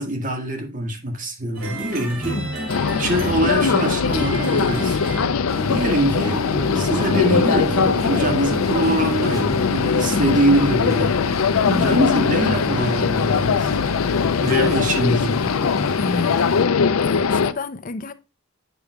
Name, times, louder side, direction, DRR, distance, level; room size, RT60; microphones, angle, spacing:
voice 1, 0.0-2.4 3.0-5.0 5.7-6.5 6.7-13.8 14.4-15.4, right 1 dB, 40° right, 1.6 m, -23 dB
sound 1, 1.5-6.2, right 1 dB, 80° right, 2.8 m, -31 dB
sound 2, 2.7-17.5, left 5 dB, 90° left, 0.5 m, -21 dB
sound 3, 5.5-16.6, equal, 15° right, 3.4 m, -30 dB
voice 2, 10.0-10.3 11.5-12.0 16.0-16.4 17.0-18.1, left 3 dB, 40° left, 0.5 m, -29 dB
8.6 x 6.0 x 2.3 m
head